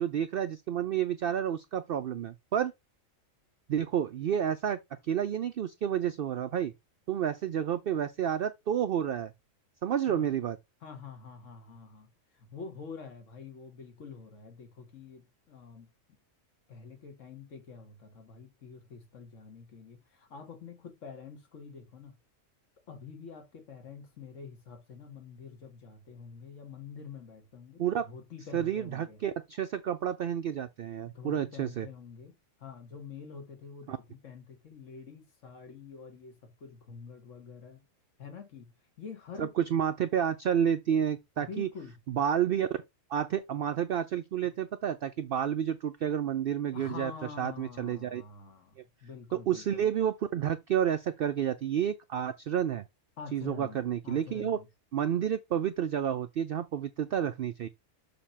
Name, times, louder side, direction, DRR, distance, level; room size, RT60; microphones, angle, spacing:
voice 1, 0.0-2.7 3.7-4.8 5.1-6.7 7.1-9.3 9.8-10.6 27.8-28.1 28.5-31.9 33.9-34.0 39.4-41.7 42.1-42.7 43.1-47.1 47.4-48.2 49.3-52.8 53.3-54.6 54.9-57.7, right 9 dB, 65° right, 0.6 m, -30 dB
voice 2, 10.8-15.9 16.7-22.1 22.9-29.2 31.0-37.8 38.2-38.7 39.0-39.5 41.4-42.0 46.7-49.8 53.2-54.7, left 5 dB, 65° left, 1.7 m, -47 dB
6.8 x 2.9 x 5.5 m
omnidirectional pair, 1.4 m